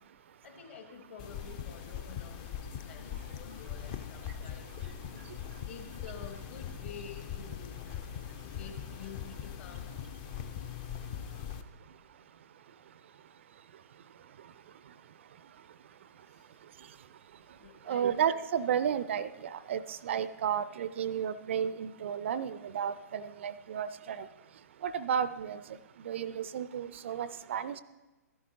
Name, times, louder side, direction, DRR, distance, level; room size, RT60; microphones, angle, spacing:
voice 1, 0.4-5.0 5.6-7.9 8.6-10.0 17.6-18.1, left 6 dB, 50° left, 4 dB, 1.7 m, -49 dB
sound 1, 1.2-11.6, left 8 dB, 30° left, 0.5 m, -41 dB
voice 2, 17.9-24.3 24.8-25.6 26.0-27.8, right 8 dB, 45° right, 16 dB, 0.3 m, -32 dB
13.5 x 11.0 x 2.9 m, 1.1 s
figure-of-eight pair, 120°, 9 cm